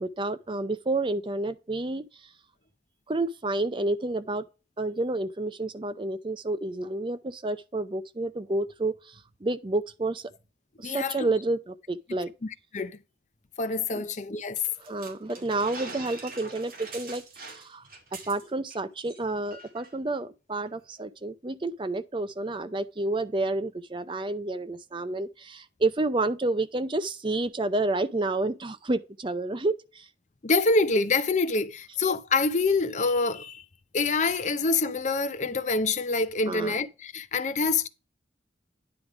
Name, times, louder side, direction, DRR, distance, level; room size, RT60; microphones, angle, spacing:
voice 1, 0.0-2.0 3.1-4.5 4.8-10.3 10.8-12.3 13.9-14.0 14.8-17.8 18.3-30.1 36.5-36.7, right 2 dB, 30° right, 0.5 m, -30 dB
voice 2, 10.8-11.3 12.4-13.0 13.6-14.6 30.4-33.6 33.9-37.9, left 3 dB, 45° left, 0.7 m, -26 dB
sound 1, 14.6-18.8 19.0-19.2 19.5-19.9, right 3 dB, 55° right, 2.2 m, -43 dB
9.8 x 3.4 x 4.8 m
head